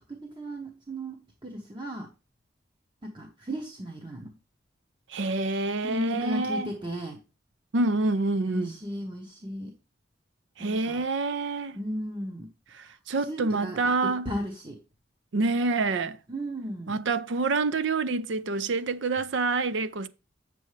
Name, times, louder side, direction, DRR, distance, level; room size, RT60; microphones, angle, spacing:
voice 1, 0.1-2.1 3.0-4.3 5.8-7.2 8.4-9.7 10.6-11.0 11.7-12.5 12.8-12.9 13.2-14.8 16.3-17.0, equal, 25° right, 0.8 m, -35 dB
voice 2, 5.1-6.7 7.7-8.7 10.6-11.8 13.1-14.3 15.3-16.2 16.9-20.1, right 3 dB, 70° right, 0.5 m, -27 dB
8.3 x 6.9 x 3.2 m
head